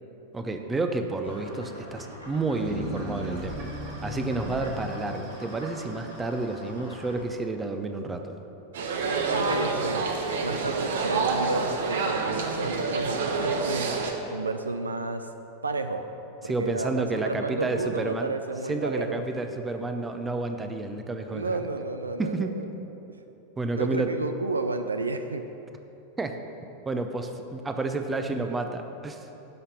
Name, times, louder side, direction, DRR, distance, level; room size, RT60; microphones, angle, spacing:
voice 1, 0.3-3.6 4.0-8.3 16.4-18.3 18.7-21.5 22.2-22.5 23.6-24.1 26.2-26.4 26.9-29.3, right 3 dB, 15° right, 6 dB, 0.8 m, -30 dB
sound 1, 1.2-7.3, equal, 85° left, 2.5 m, -44 dB
sound 2, 2.5-6.9, equal, 40° right, 2.1 m, -38 dB
sound 3, 8.7-14.1, right 4 dB, 60° right, 1.1 m, -28 dB
voice 2, 9.3-10.1 10.4-13.9 14.3-15.3 15.6-16.0 16.4-19.3 21.3-22.6 23.7-25.4, right 3 dB, 75° right, 8 dB, 0.5 m, -31 dB
11.0 x 5.8 x 6.8 m, 3.0 s
figure-of-eight pair, 90°, 0 cm